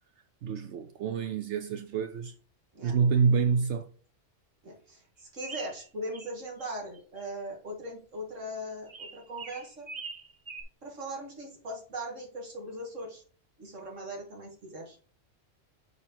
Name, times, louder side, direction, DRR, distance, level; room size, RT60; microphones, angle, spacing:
voice 1, 0.4-2.3 2.8-3.9, right 5 dB, 70° right, 0.8 m, -27 dB
voice 2, 4.6-9.9 10.8-13.2 13.6-15.0, right 1 dB, 90° right, 2.4 m, -40 dB
sound 1, 5.4-6.3 6.6-7.2 8.9-10.6, right 4 dB, 30° right, 1.0 m, -43 dB
6.8 x 4.3 x 4.4 m
omnidirectional pair, 1.3 m